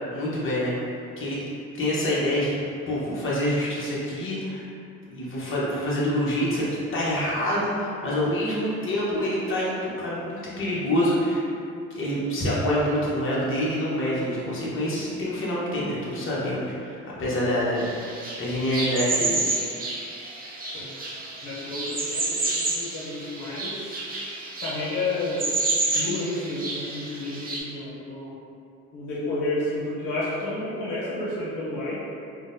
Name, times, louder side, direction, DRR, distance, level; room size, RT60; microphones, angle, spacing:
voice 1, 0.1-0.7 1.2-1.4 1.7-2.6 2.9-4.7 5.1-11.4 11.9-19.4, equal, 45° left, -7 dB, 0.9 m, -26 dB
sound 1, 17.8-27.6, right 2 dB, 30° right, 0.6 m, -30 dB
voice 2, 21.4-24.0 24.6-25.5 25.9-28.3 28.9-32.0, left 2 dB, 85° left, -7 dB, 0.7 m, -31 dB
3.7 x 2.1 x 2.6 m, 2.5 s
cardioid pair, 90°, 30 cm